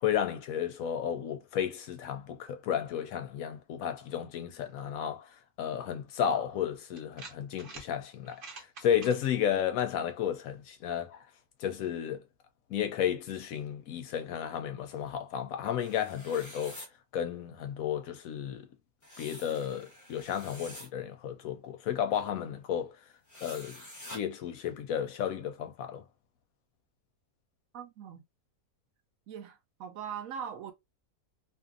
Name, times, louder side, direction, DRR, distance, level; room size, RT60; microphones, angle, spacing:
voice 1, 0.0-5.3 5.6-11.2 11.6-12.2 12.7-16.8 17.1-18.7 19.2-22.9 23.4-23.8 24.1-26.0, left 9 dB, 70° left, 0.9 m, -33 dB
sound 1, 6.2-6.3 7.0-7.9 8.2-9.2, right 4 dB, 50° right, 0.7 m, -46 dB
sound 2, 15.8-16.9 19.0-20.9 23.3-24.2, left 1 dB, 30° left, 0.3 m, -47 dB
voice 2, 27.7-28.2 29.3-30.7, right 8 dB, 70° right, 0.9 m, -41 dB
2.6 x 2.6 x 2.4 m
omnidirectional pair, 1.6 m